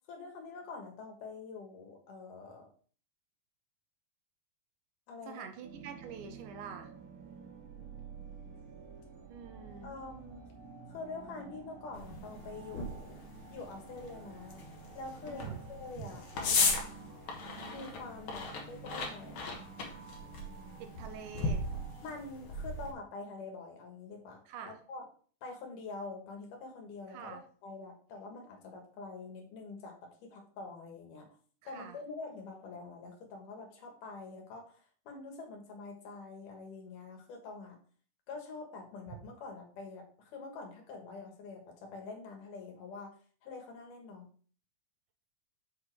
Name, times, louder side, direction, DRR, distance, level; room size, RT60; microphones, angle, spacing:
voice 1, 0.1-2.7 5.1-5.5 9.8-10.5 10.9-13.2 13.5-16.7 17.7-19.5 22.0-25.1 25.4-31.3 31.7-34.8 35.1-37.8 38.3-43.2 43.4-44.3, left 3 dB, 75° left, 2 dB, 3.1 m, -46 dB
voice 2, 5.3-6.9 9.3-10.0 15.3-15.6 16.0-16.1 20.8-21.7 24.5-24.8 27.1-27.4 31.6-32.0 39.1-39.2, right 7 dB, 80° right, 7 dB, 2.2 m, -46 dB
sound 1, 5.6-22.2, right 6 dB, 55° right, 1.6 m, -51 dB
sound 2, 11.9-22.9, left 3 dB, 55° left, 2.0 m, -37 dB
6.8 x 5.1 x 4.5 m, 0.43 s
omnidirectional pair, 3.7 m